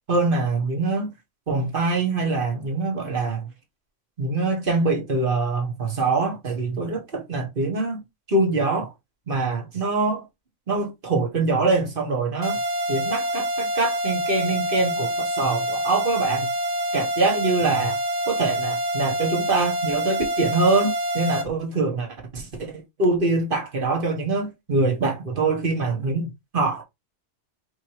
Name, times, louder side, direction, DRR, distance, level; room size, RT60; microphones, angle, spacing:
voice 1, 0.1-1.1 1.5-3.4 4.2-8.0 8.3-8.9 9.3-10.2 10.7-12.6 12.9-16.5 16.9-18.0 18.3-22.1 22.3-22.7 23.0-26.8, right 3 dB, 40° right, 1.6 m, -24 dB
sound 1, 12.4-21.4, equal, 60° right, 1.3 m, -26 dB
5.1 x 3.3 x 3.0 m
omnidirectional pair, 1.4 m